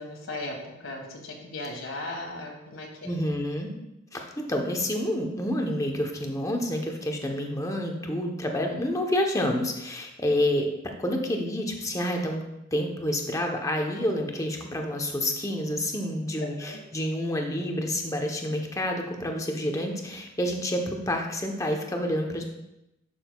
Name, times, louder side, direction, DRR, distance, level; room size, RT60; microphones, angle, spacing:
voice 1, 0.0-3.1 16.4-16.8, left 2 dB, 75° left, 1 dB, 1.6 m, -37 dB
voice 2, 3.0-3.7 4.1-10.7 11.0-12.4 12.7-22.4, left 1 dB, 15° left, 2 dB, 0.8 m, -28 dB
11.5 x 6.2 x 2.3 m, 0.89 s
head